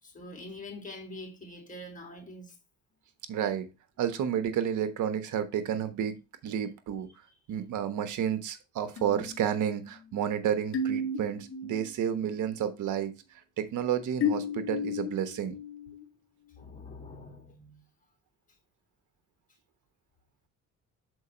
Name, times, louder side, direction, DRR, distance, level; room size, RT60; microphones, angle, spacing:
voice 1, 0.0-2.6 16.6-17.8, left 1 dB, 25° left, 3.1 m, -44 dB
voice 2, 3.3-3.7 4.0-7.1 7.5-13.1 13.6-15.6, right 9 dB, 80° right, 1.1 m, -31 dB
sound 1, 9.0-11.9 12.3-12.7 14.2-16.1, left 4 dB, 45° left, 0.9 m, -34 dB
6.5 x 4.7 x 4.3 m
cardioid pair, 90°, 30 cm